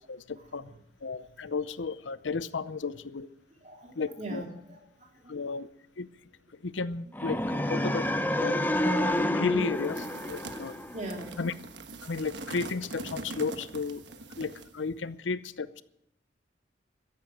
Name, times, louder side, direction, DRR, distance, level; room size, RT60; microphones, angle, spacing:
voice 1, 0.1-3.3 4.0-4.4 5.3-5.7 6.0-6.1 6.5-7.4 7.7-8.1 8.4-8.6 8.8-10.8 11.4-11.5 12.0-14.1 14.4-15.8, left 4 dB, 80° left, 15 dB, 0.7 m, -34 dB
voice 2, 3.5-5.6 7.5-7.7 8.6-8.7 10.5-11.5, right 1 dB, 40° right, 1 dB, 3.3 m, -42 dB
sound 1, 7.1-11.2, left 1 dB, 10° left, 0.8 m, -29 dB
sound 2, 9.7-14.8, right 3 dB, 70° right, 1.3 m, -43 dB
14.0 x 10.5 x 7.6 m, 0.82 s
head